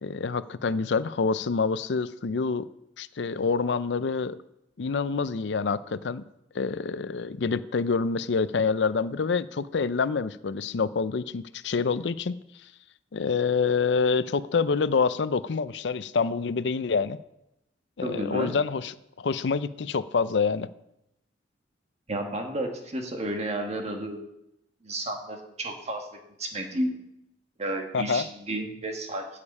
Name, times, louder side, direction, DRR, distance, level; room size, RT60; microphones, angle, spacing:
voice 1, 0.0-2.7 3.0-4.4 4.8-6.2 6.5-12.3 13.1-17.2 18.0-18.9 19.2-20.7 27.9-28.2, left 5 dB, 75° left, 15 dB, 0.5 m, -27 dB
voice 2, 18.0-18.6 22.1-24.2 24.8-26.9 27.6-29.3, right 1 dB, 40° right, 3 dB, 1.7 m, -32 dB
15.5 x 6.7 x 5.4 m, 0.85 s
head